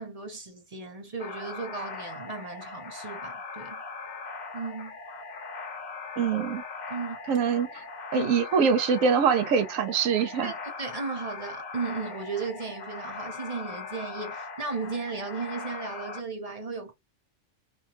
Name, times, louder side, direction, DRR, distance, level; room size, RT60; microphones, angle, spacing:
voice 1, 0.0-3.8 4.5-5.0 6.9-7.2 8.1-8.3 10.4-10.5 10.8-16.9, right 4 dB, 35° right, 0.8 m, -35 dB
sound 1, 1.2-16.2, left 4 dB, 45° left, 0.9 m, -40 dB
voice 2, 6.2-6.6 7.3-7.8 8.1-10.5, right 6 dB, 90° right, 1.1 m, -24 dB
3.5 x 2.2 x 2.8 m
omnidirectional pair, 1.4 m